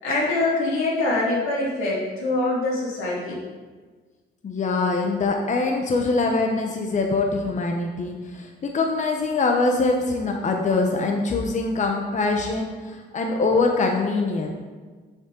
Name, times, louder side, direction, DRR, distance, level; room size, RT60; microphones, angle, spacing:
voice 1, 0.0-3.4, left 2 dB, 85° left, -5 dB, 2.8 m, -24 dB
voice 2, 4.4-14.5, left 3 dB, 40° left, 2 dB, 0.9 m, -23 dB
10.5 x 5.5 x 3.8 m, 1.4 s
cardioid pair, 90°, 20 cm